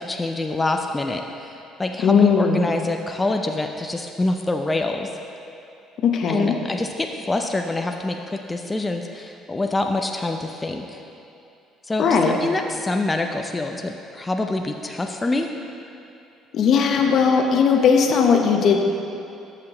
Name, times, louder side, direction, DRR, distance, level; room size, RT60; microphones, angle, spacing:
voice 1, 0.0-5.1 6.3-11.0 11.8-15.5, left 2 dB, 20° left, 4 dB, 0.5 m, -26 dB
voice 2, 2.0-2.7 6.0-6.6 12.0-12.4 16.5-18.8, left 6 dB, 60° left, 3 dB, 0.8 m, -18 dB
13.5 x 5.8 x 3.0 m, 2.7 s
supercardioid pair, 70°, 0 cm